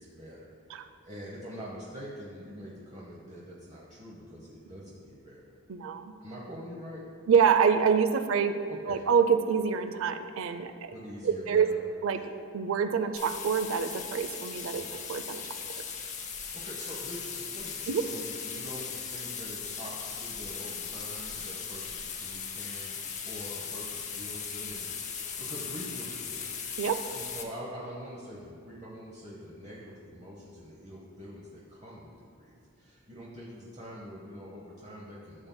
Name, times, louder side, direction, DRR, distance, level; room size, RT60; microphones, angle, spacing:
voice 1, 0.0-5.5 6.2-7.0 8.9-9.0 10.9-11.9 12.1-12.3 14.8-15.1 16.5-24.9 25.2-26.5 27.1-35.5, equal, 30° right, -5 dB, 0.9 m, -45 dB
voice 2, 5.7-6.1 7.3-8.5 8.9-10.9 11.2-11.7 12.0-12.2 12.5-14.8 15.1-15.4 17.9-18.0 26.8-27.0, right 6 dB, 70° right, 10 dB, 0.4 m, -26 dB
sound 1, 13.2-27.4, left 6 dB, 35° left, 0.6 m, -38 dB
12.5 x 6.9 x 2.2 m, 2.4 s
head